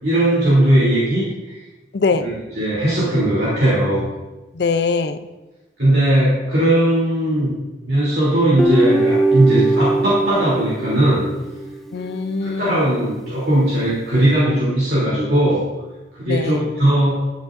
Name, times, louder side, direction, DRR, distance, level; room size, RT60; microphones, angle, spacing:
voice 1, 0.0-1.2 2.6-4.1 5.8-7.5 7.9-11.3 12.4-15.6 16.2-17.1, right 1 dB, 60° right, -9 dB, 3.0 m, -18 dB
voice 2, 1.9-2.3 4.6-5.2 11.9-12.8 16.2-16.7, left 4 dB, 65° left, 10 dB, 0.5 m, -22 dB
Guitar, 8.6-11.9, right 2 dB, ahead, 0.4 m, -20 dB
12.5 x 7.0 x 2.6 m, 1.1 s
head